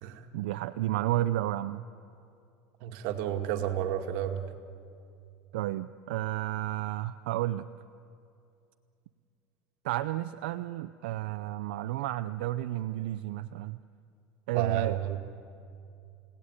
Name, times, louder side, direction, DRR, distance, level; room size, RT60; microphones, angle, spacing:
voice 1, 0.3-1.8 5.5-7.7 9.8-13.8 14.5-15.0, right 15 dB, 85° right, 9 dB, 0.6 m, -31 dB
voice 2, 2.8-4.4 14.5-15.2, right 11 dB, 65° right, 5 dB, 2.1 m, -31 dB
30.0 x 17.5 x 9.8 m, 2.5 s
supercardioid pair, 135°, 5 cm